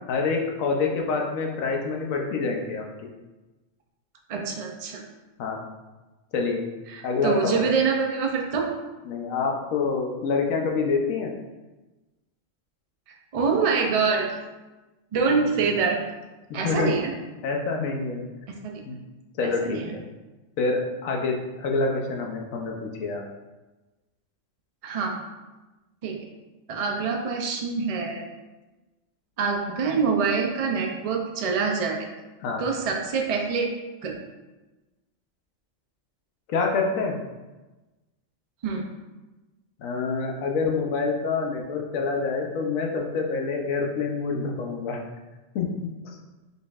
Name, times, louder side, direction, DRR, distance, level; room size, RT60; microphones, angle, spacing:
voice 1, 0.1-2.8 5.4-5.6 6.3-6.6 7.0-7.7 9.1-11.3 15.4-15.6 16.5-17.0 17.4-18.2 18.8-19.0 19.4-20.0 20.6-23.2 32.4-32.6 36.5-37.2 39.8-45.0 45.5-46.2, left 4 dB, 85° left, 1 dB, 1.1 m, -27 dB
voice 2, 4.3-5.0 6.9-8.7 13.3-14.3 15.1-16.0 16.5-17.1 18.5-18.8 19.4-19.9 24.8-25.2 26.0-26.3 26.7-28.3 29.4-32.1 32.6-33.7 34.0-34.1 38.6-38.8, right 5 dB, 70° right, 1 dB, 0.3 m, -25 dB
5.3 x 4.0 x 2.4 m, 1.1 s
omnidirectional pair, 1.4 m